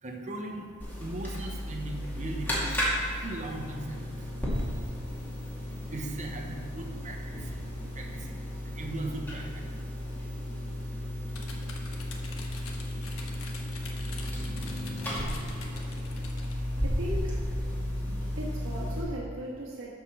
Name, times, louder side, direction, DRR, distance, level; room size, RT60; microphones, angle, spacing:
voice 1, 0.0-0.7 1.0-2.8 3.2-4.5 5.5-5.6 5.9-8.4 8.6-9.6, right 1 dB, 35° right, 1 dB, 1.1 m, -39 dB
sound 1, 0.8-19.0, equal, 10° left, 2.6 m, -34 dB
sound 2, 11.3-16.6, left 3 dB, 80° left, 1.3 m, -46 dB
voice 2, 16.5-17.5 18.1-19.9, equal, 65° right, -5 dB, 2.0 m, -39 dB
11.5 x 5.3 x 6.3 m, 2.2 s
head